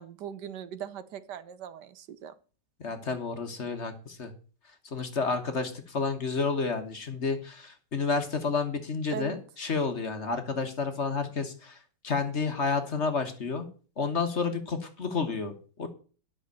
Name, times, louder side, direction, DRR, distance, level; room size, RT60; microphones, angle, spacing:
voice 1, 0.0-2.3 9.1-9.4, right 9 dB, 75° right, 14 dB, 1.4 m, -40 dB
voice 2, 2.8-4.3 4.9-11.8 12.0-13.6 14.0-15.9, left 4 dB, 45° left, 7 dB, 1.5 m, -30 dB
10.0 x 6.3 x 6.7 m, 0.38 s
omnidirectional pair, 1.9 m